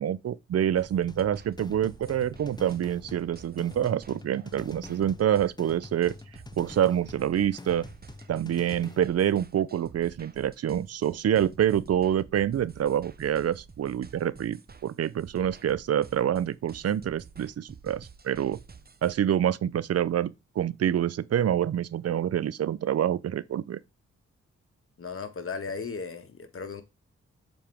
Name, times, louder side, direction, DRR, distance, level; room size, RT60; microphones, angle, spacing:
voice 1, 0.0-6.1 6.6-7.9 8.3-18.6 19.0-23.8, right 10 dB, 60° right, 0.5 m, -27 dB
sound 1, 0.8-19.2, right 5 dB, 30° right, 0.8 m, -50 dB
sound 2, 1.1-9.1, left 2 dB, 15° left, 0.6 m, -46 dB
voice 2, 25.0-26.8, left 5 dB, 50° left, 1.5 m, -36 dB
7.1 x 4.4 x 3.5 m
supercardioid pair, 45°, 29 cm